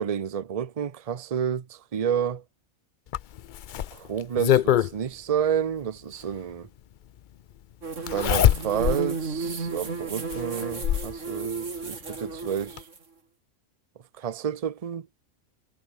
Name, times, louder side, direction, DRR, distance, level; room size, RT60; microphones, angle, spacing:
voice 1, 0.0-2.4 3.9-6.7 8.1-12.8 14.2-15.1, right 8 dB, 35° right, 0.7 m, -30 dB
Zipper (clothing), 3.1-4.9 6.3-6.4 8.1-9.0 9.5-9.6 10.3-11.1 12.3-12.4 12.8-12.9, left 11 dB, 75° left, 0.4 m, -23 dB
sound 1, 7.8-13.0, right 4 dB, 65° right, 2.9 m, -33 dB
omnidirectional pair, 1.4 m